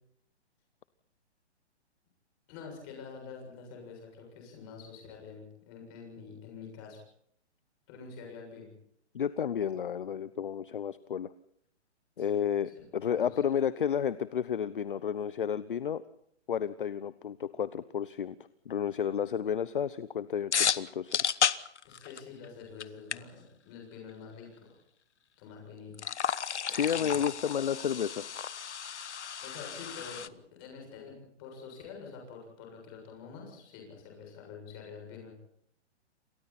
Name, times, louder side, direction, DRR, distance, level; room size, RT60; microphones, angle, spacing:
voice 1, 2.5-7.0 7.9-8.7 12.2-12.4 12.7-13.4 21.8-24.8 25.4-26.0 26.9-27.3 29.4-35.3, left 5 dB, 20° left, 1 dB, 7.3 m, -47 dB
voice 2, 9.1-11.3 12.2-16.0 16.5-18.3 18.7-21.4 26.7-28.3, left 8 dB, 50° left, 16 dB, 0.9 m, -31 dB
sound 1, 20.5-22.5 22.8-22.9 23.1-23.2 25.9-30.3, left 8 dB, 75° left, 1.3 m, -32 dB
29.0 x 26.0 x 4.3 m, 0.69 s
hypercardioid pair, 180°, 35 cm